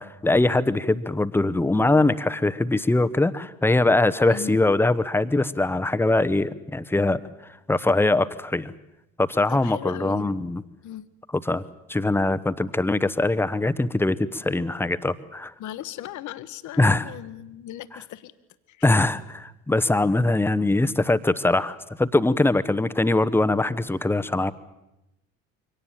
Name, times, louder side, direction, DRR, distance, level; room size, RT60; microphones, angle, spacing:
voice 1, 0.0-7.2 7.7-8.7 9.2-10.6 11.3-11.6 11.9-15.5 16.8-17.1 18.8-24.5, left 2 dB, 5° left, 14 dB, 0.9 m, -22 dB
voice 2, 4.3-4.6 9.5-10.3 10.8-11.1 15.6-18.3 18.7-18.9, left 12 dB, 45° left, 13 dB, 1.2 m, -37 dB
24.0 x 18.0 x 8.8 m, 0.93 s
figure-of-eight pair, 65°, 41 cm